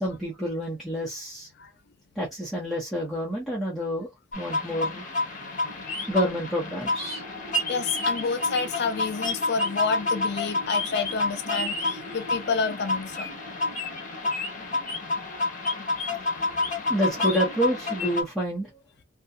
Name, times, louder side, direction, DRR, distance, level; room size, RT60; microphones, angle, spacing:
voice 1, 0.0-1.5 2.2-4.1 4.3-5.1 6.1-7.2 16.9-18.7, equal, ahead, 0.9 m, -28 dB
sound 1, 4.3-18.2, left 2 dB, 45° left, 0.9 m, -29 dB
voice 2, 7.0-13.5, left 5 dB, 60° left, 0.5 m, -30 dB
2.3 x 2.3 x 2.6 m
head